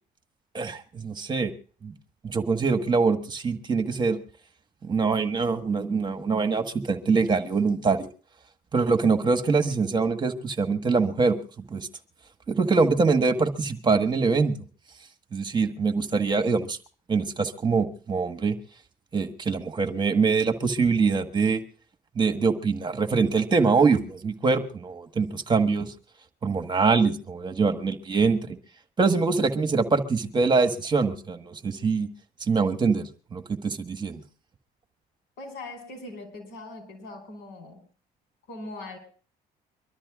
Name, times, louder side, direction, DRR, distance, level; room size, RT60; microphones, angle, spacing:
voice 1, 0.5-1.5 1.8-1.9 2.2-4.2 4.8-8.1 8.7-11.3 11.7-11.9 12.5-14.5 15.3-16.8 17.1-18.5 19.1-21.6 22.1-25.9 26.4-28.6 29.0-32.1 32.4-34.2, right 4 dB, 25° right, 8 dB, 1.5 m, -24 dB
voice 2, 35.4-37.9 38.5-39.0, left 2 dB, 85° left, 5 dB, 5.2 m, -40 dB
24.5 x 13.0 x 2.4 m, 0.41 s
cardioid pair, 110°, 17 cm